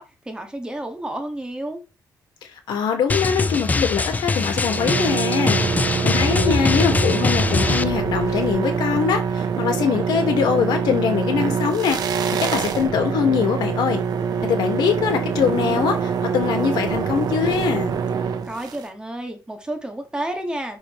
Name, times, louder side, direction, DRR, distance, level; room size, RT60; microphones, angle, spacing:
voice 1, 0.0-1.8 18.4-20.8, right 1 dB, 10° right, 1.9 m, -31 dB
voice 2, 2.7-5.6 6.0-12.0 12.4-14.0 14.4-17.9, left 7 dB, 90° left, 2.0 m, -22 dB
Drum, 3.1-7.8, left 3 dB, 20° left, 0.5 m, -22 dB
sound 1, 4.3-18.9, right 6 dB, 65° right, 1.1 m, -25 dB
Fire, 7.6-10.0, left 8 dB, 55° left, 1.6 m, -39 dB
6.3 x 6.1 x 3.3 m
cardioid pair, 125°, 7 cm